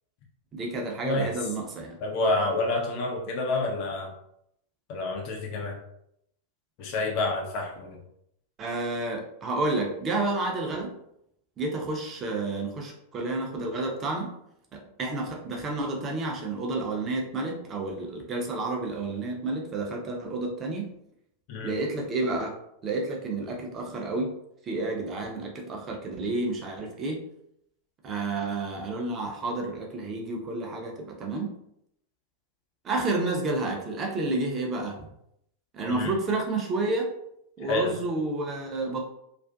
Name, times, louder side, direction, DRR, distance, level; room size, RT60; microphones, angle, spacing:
voice 1, 0.5-2.0 8.6-11.0 11.6-14.3 14.7-20.9 21.6-22.5 22.8-24.4 24.6-27.2 28.0-31.5 32.8-35.1 35.7-37.1 37.6-39.0, right 2 dB, 25° right, 0 dB, 0.6 m, -30 dB
voice 2, 2.0-4.1 4.9-5.8 6.8-8.0 21.5-21.7 35.9-36.1 37.6-38.0, left 2 dB, 45° left, 0 dB, 0.5 m, -28 dB
2.5 x 2.4 x 2.3 m, 0.75 s
figure-of-eight pair, 90°, 0 cm